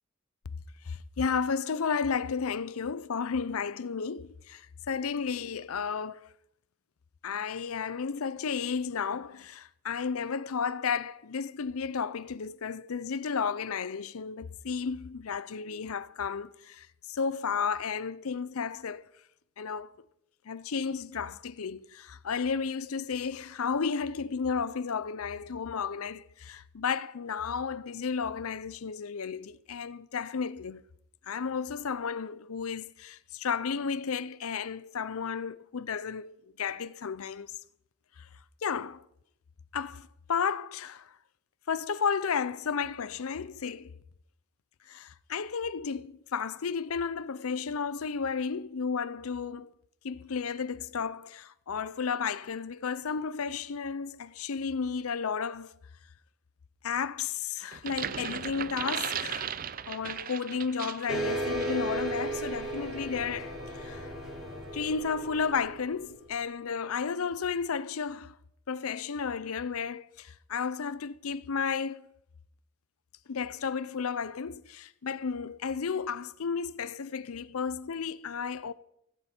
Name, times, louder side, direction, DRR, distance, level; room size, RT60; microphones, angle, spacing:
voice 1, 0.9-4.6 4.9-6.3 7.2-19.1 19.6-19.9 20.5-30.8 31.3-37.5 38.6-39.0 39.7-41.0 41.7-43.9 44.9-49.7 50.0-55.7 56.8-59.6 59.9-63.5 63.8-64.1 64.7-68.3 68.7-72.0 73.3-78.7, left 6 dB, 85° left, 0.6 m, -33 dB
sound 1, 57.7-61.2 61.6-61.8, right 8 dB, 40° right, 0.5 m, -36 dB
sound 2, 61.1-66.2, right 1 dB, ahead, 5.4 m, -35 dB
17.0 x 16.0 x 4.4 m
head